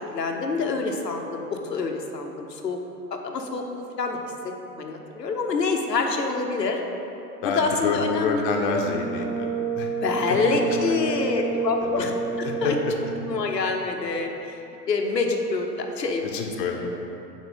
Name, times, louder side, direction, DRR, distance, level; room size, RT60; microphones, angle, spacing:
voice 1, 0.1-2.8 3.1-4.2 4.4-6.8 7.4-8.4 10.0-12.1 12.4-12.8 13.3-14.6 14.9-16.2 16.8-16.9, left 4 dB, 85° left, 3 dB, 0.7 m, -26 dB
voice 2, 7.4-9.9 11.8-12.1 12.4-12.7 16.3-16.9, left 4 dB, 35° left, 2 dB, 0.6 m, -27 dB
Brass instrument, 8.8-13.2, right 5 dB, 40° right, 0.6 m, -30 dB
6.2 x 4.3 x 3.6 m, 2.9 s
figure-of-eight pair, 95°, 48 cm